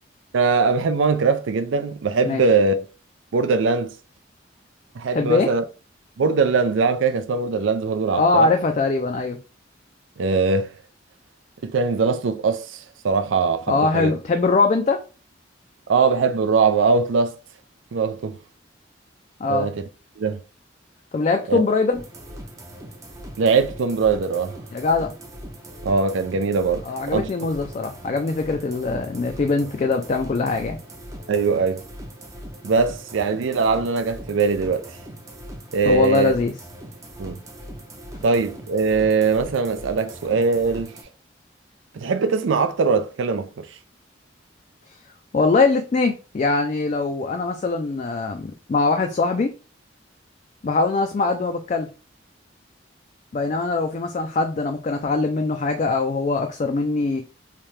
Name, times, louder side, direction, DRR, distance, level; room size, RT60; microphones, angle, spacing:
voice 1, 0.3-2.8 3.3-3.9 5.0-5.6 6.2-8.5 10.2-10.7 11.6-12.8 13.0-14.1 15.9-17.4 17.9-18.4 19.5-19.8 20.2-20.4 21.5-21.6 23.4-24.6 25.8-27.3 31.3-31.8 32.6-34.8 35.7-36.3 37.2-37.4 38.2-40.9 41.9-43.7, right 4 dB, 85° right, 0.4 m, -21 dB
voice 2, 5.1-5.5 8.2-9.4 13.7-15.0 19.4-19.7 21.1-22.0 24.7-25.2 26.9-30.8 35.9-36.5 45.3-49.5 50.6-51.9 53.3-57.2, left 3 dB, 40° left, 0.3 m, -22 dB
sound 1, 21.9-41.0, right 1 dB, 15° right, 0.5 m, -40 dB
3.3 x 2.8 x 3.1 m
head